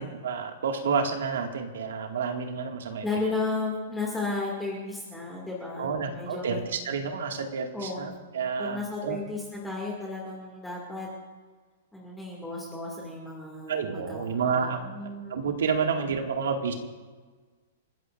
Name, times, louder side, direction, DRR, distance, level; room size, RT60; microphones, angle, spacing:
voice 1, 0.0-3.1 5.8-9.2 13.7-14.9 15.3-16.7, right 5 dB, 85° right, 3 dB, 2.0 m, -29 dB
voice 2, 2.9-6.6 7.7-8.1 8.6-11.1 11.9-15.4 15.8-16.1, left 3 dB, 5° left, -4 dB, 2.3 m, -34 dB
30.0 x 14.5 x 2.6 m, 1.4 s
hypercardioid pair, 170°, 0 cm